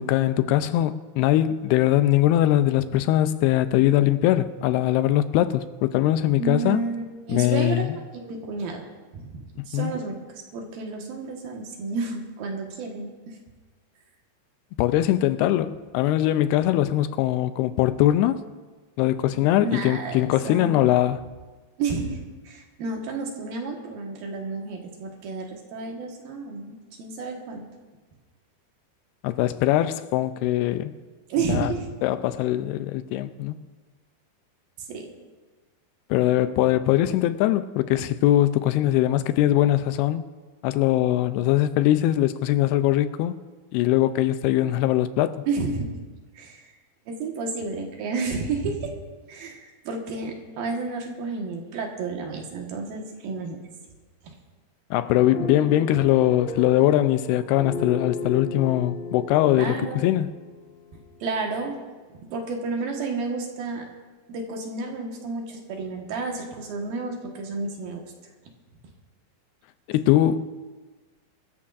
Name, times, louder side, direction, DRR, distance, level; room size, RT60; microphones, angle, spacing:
voice 1, 0.0-6.8 7.3-8.0 9.7-9.9 14.8-18.4 19.0-21.3 29.2-31.0 31.5-31.7 32.0-33.6 36.1-40.3 40.6-43.4 43.7-45.4 54.9-60.3 69.9-70.5, left 13 dB, 85° left, 2.6 m, -21 dB
voice 2, 6.3-7.8 8.1-8.9 9.1-9.3 9.7-13.4 19.6-20.8 21.8-22.2 22.4-27.6 31.3-31.9 34.8-35.1 45.5-45.9 46.3-46.7 47.1-49.0 49.3-53.6 54.2-54.3 59.6-60.0 61.2-61.7 62.3-63.9 64.3-68.1, right 4 dB, 65° right, 3.2 m, -31 dB
sound 1, 55.3-61.4, left 3 dB, 45° left, 4.8 m, -35 dB
24.0 x 14.0 x 2.5 m
omnidirectional pair, 4.6 m